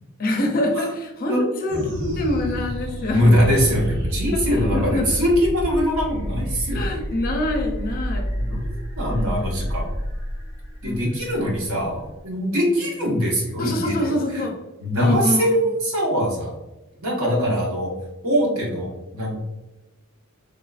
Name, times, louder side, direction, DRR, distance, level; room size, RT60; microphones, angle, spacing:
voice 1, 0.2-1.3 1.6-3.5 4.5-5.2 6.7-8.3 9.2-9.5 10.8-11.1 11.3-11.5 12.7-12.9 13.6-14.5 15.0-15.4 17.3-17.6, left 1 dB, 40° left, 2 dB, 0.5 m, -25 dB
sound 1, 1.7-12.3, equal, 40° right, 1.0 m, -29 dB
voice 2, 3.1-7.0 8.4-10.0 10.8-14.4 14.8-16.6 17.0-17.9 18.2-19.4, equal, 70° right, -3 dB, 1.0 m, -22 dB
3.5 x 2.4 x 2.3 m, 1.0 s
head